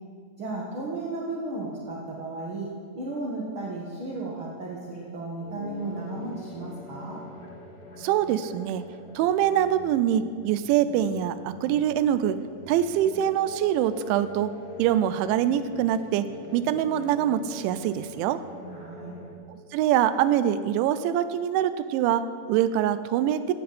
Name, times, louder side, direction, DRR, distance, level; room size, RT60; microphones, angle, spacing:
voice 1, 0.4-2.7 2.9-7.2 18.7-19.1, right 2 dB, 55° right, -5 dB, 1.5 m, -34 dB
sound 1, 5.4-19.3, left 2 dB, 55° left, 1.0 m, -44 dB
voice 2, 8.0-8.8 9.2-12.4 12.7-14.5 14.8-16.3 16.5-18.4 19.5-23.5, right 10 dB, 90° right, 12 dB, 3.0 m, -24 dB
17.0 x 16.5 x 4.3 m, 2.1 s
omnidirectional pair, 5.2 m